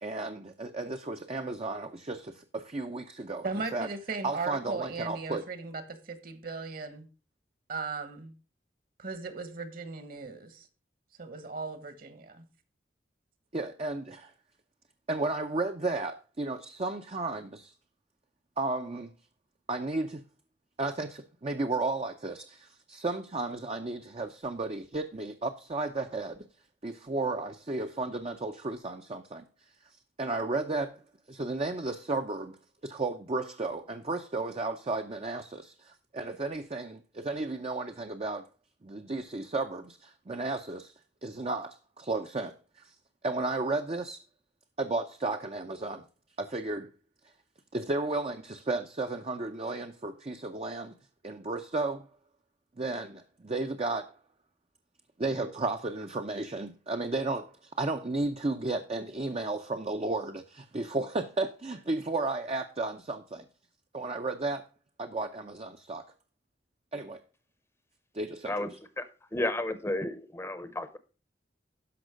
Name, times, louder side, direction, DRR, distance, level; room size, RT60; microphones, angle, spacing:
voice 1, 0.0-3.5 3.7-3.9 4.2-5.4 13.5-14.3 15.1-17.7 18.6-19.1 19.7-20.2 20.8-26.4 26.8-29.4 30.2-31.0 31.3-32.6 32.8-38.4 38.8-40.9 41.2-42.9 43.2-44.2 44.8-46.0 46.4-46.9 47.7-51.0 51.2-52.1 52.8-54.1 55.2-63.4 63.9-64.6 65.0-66.0 66.9-67.2 68.1-68.7, right 2 dB, 35° right, 0.6 m, -33 dB
voice 2, 3.4-7.1 7.7-8.3 9.0-10.7 11.2-12.4, right 4 dB, 50° right, 1.4 m, -37 dB
voice 3, 69.0-71.0, left 1 dB, 15° left, 0.8 m, -32 dB
12.5 x 5.4 x 5.1 m
head